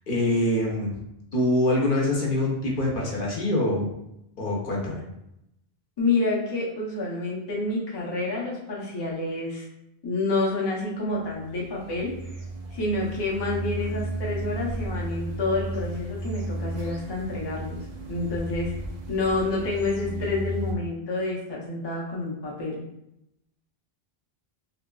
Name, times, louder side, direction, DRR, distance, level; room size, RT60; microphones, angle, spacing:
voice 1, 0.1-1.0 1.3-3.9 4.4-5.0, left 1 dB, 60° left, -3 dB, 0.8 m, -24 dB
voice 2, 6.0-9.7 10.0-12.3 12.7-18.7 19.1-22.8, left 2 dB, 35° left, -4 dB, 0.4 m, -28 dB
sound 1, 11.0-20.7, right 1 dB, 55° right, 0.5 m, -34 dB
2.7 x 2.3 x 2.2 m, 0.83 s
omnidirectional pair, 1.1 m